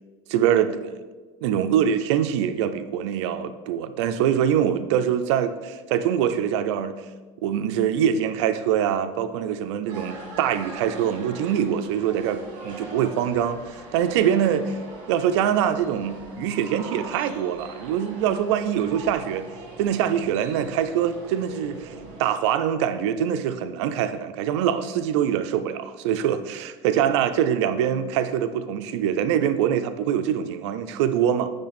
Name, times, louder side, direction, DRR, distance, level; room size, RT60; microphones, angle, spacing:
voice 1, 0.3-1.0 1.4-7.0 7.4-13.6 13.9-14.8 15.1-19.5 19.8-21.9 22.2-31.5, right 9 dB, 90° right, 11 dB, 0.5 m, -24 dB
sound 1, 9.9-22.2, right 3 dB, 60° right, 2.2 m, -41 dB
9.7 x 3.3 x 4.2 m, 1.3 s
supercardioid pair, 130°, 14 cm